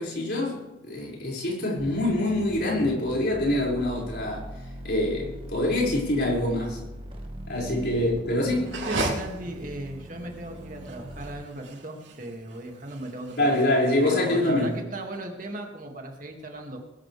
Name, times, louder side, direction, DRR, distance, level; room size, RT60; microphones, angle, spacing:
voice 1, 0.0-4.5 4.8-6.8 7.5-8.8 13.4-14.7, left 1 dB, 60° left, -3 dB, 6.0 m, -25 dB
sound 1, 1.8-11.3, equal, 30° right, 1.8 m, -41 dB
sound 2, 8.6-14.7, right 2 dB, 80° right, 3.1 m, -35 dB
voice 2, 8.9-13.7 14.0-16.8, right 1 dB, 45° right, 2 dB, 2.4 m, -37 dB
21.0 x 14.0 x 3.5 m, 1.0 s
head